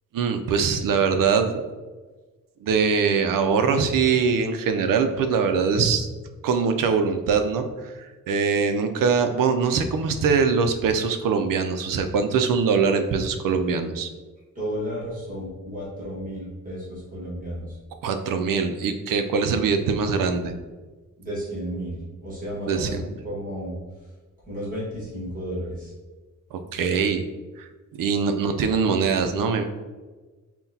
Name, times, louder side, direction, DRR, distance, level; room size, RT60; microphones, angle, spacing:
voice 1, 0.1-1.6 2.6-6.1 6.4-14.1 18.0-20.5 22.7-23.0 26.5-27.2 27.6-27.7 28.0-29.6, right 5 dB, 90° right, 7 dB, 0.5 m, -22 dB
voice 2, 14.5-17.7 21.2-22.9 23.2-23.7 24.5-25.9, equal, 25° right, -8 dB, 1.4 m, -32 dB
5.6 x 2.2 x 2.7 m, 1.3 s
wide cardioid pair, 180°, 32 cm